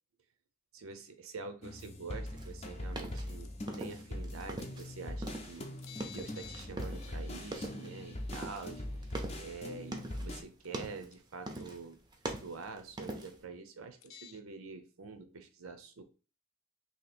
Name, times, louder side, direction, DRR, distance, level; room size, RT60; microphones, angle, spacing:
voice 1, 0.7-5.7 6.1-8.8 9.4-12.0 12.4-16.0, right 4 dB, 70° right, 8 dB, 0.6 m, -46 dB
sound 1, 1.6-10.4, left 1 dB, 30° left, 0.6 m, -42 dB
sound 2, 2.4-4.9 5.2-7.2 7.4-7.9 8.3-10.3 10.6-11.1 11.5-11.9 12.1-13.4, right 1 dB, 20° right, 0.6 m, -42 dB
sound 3, 3.4-3.7 5.1-5.2 5.8-6.7 7.0-7.1 9.0-9.1 10.4-10.8 11.1-11.2 11.6-11.7 14.0-14.4, left 9 dB, 70° left, 0.5 m, -51 dB
2.9 x 2.9 x 4.1 m, 0.35 s
head